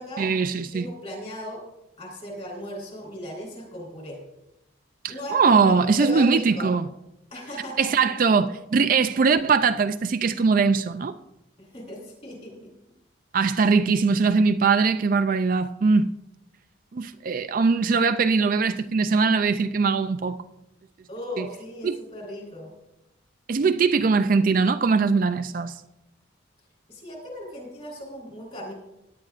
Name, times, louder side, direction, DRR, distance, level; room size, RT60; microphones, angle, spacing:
voice 1, 0.2-0.9 5.0-6.9 7.8-11.2 13.3-16.1 16.9-20.4 21.4-21.5 21.8-22.0 23.5-25.7, right 4 dB, 45° right, 0.4 m, -21 dB
voice 2, 0.7-1.6 2.0-4.2 5.1-6.7 7.3-7.9 8.3-8.4 9.1-9.4 11.6-12.7 21.1-22.7 26.9-28.7, left 1 dB, 35° left, 3.8 m, -37 dB
17.5 x 10.0 x 2.5 m
head